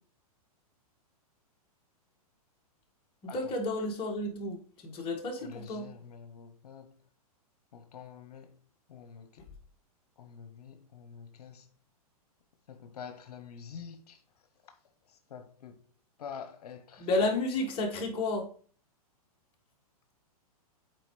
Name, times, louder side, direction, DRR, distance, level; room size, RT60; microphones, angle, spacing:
voice 1, 3.3-5.9 17.0-18.5, left 2 dB, 30° left, 1.6 m, -31 dB
voice 2, 5.4-7.0 7.7-8.6 8.9-9.5 10.2-11.7 12.7-14.2 14.6-14.7 15.1-15.8 16.2-17.1, left 7 dB, 80° left, 0.9 m, -47 dB
7.8 x 4.5 x 3.1 m
hypercardioid pair, 135°, 20 cm